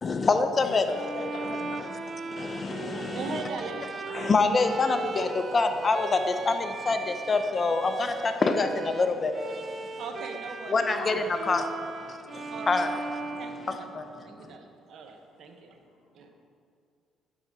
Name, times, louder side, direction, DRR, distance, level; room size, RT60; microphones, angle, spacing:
voice 1, 0.0-0.9 1.8-1.9 2.3-3.4 4.1-9.9 10.7-11.6 12.1-12.9 13.7-14.1 14.4-14.5, left 3 dB, 35° left, 7 dB, 0.6 m, -26 dB
Bowed string instrument, 0.9-14.3, right 4 dB, 45° right, 0.4 m, -38 dB
voice 2, 1.1-1.8 10.9-11.6, left 3 dB, 75° left, 0 dB, 1.3 m, -38 dB
voice 3, 3.1-3.9 4.9-5.0 10.0-10.7 11.2-11.3 12.5-13.1 13.4-15.8 16.1-16.3, right 4 dB, 65° right, 4 dB, 0.8 m, -40 dB
10.0 x 3.9 x 4.7 m, 2.4 s
supercardioid pair, 80°, 0 cm